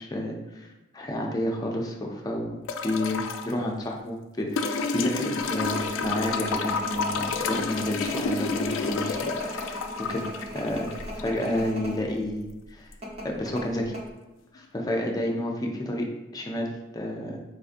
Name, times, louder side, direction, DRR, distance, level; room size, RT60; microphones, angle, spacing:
voice 1, 0.0-2.6 2.8-9.8 10.1-10.2 10.5-10.9 11.1-12.9 13.2-13.9 14.5-16.1 16.3-17.4, left 1 dB, 20° left, 0 dB, 0.4 m, -30 dB
sound 1, 2.7-3.5 4.6-11.6 12.9-13.0, left 4 dB, 90° left, 0.3 m, -30 dB
sound 2, 5.4-12.0 12.3-12.4 13.0-14.0, equal, 35° right, 0.6 m, -38 dB
4.1 x 2.6 x 2.5 m, 1.1 s
head